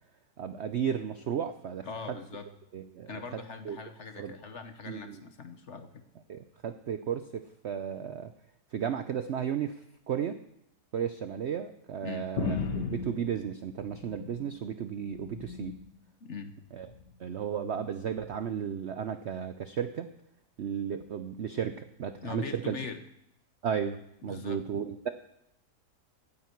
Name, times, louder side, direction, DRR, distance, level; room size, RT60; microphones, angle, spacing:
voice 1, 0.4-1.9 2.7-3.1 3.6-3.8 4.2-4.3 4.9-5.2 6.3-8.3 8.7-9.8 10.1-10.4 10.9-12.6 12.9-15.7 16.7-16.9 17.2-20.1 20.6-22.8 23.6-24.0 24.2-25.1, right 8 dB, 70° right, 10 dB, 0.6 m, -34 dB
voice 2, 1.8-2.5 3.1-6.0 12.0-12.3 16.2-16.5 22.2-23.0 24.2-24.6, left 5 dB, 50° left, 8 dB, 1.1 m, -41 dB
sound 1, 12.4-14.6 15.0-15.9 16.8-17.1 18.1-18.3, left 4 dB, 85° left, 1.9 m, -36 dB
16.0 x 9.6 x 4.5 m, 0.80 s
omnidirectional pair, 1.8 m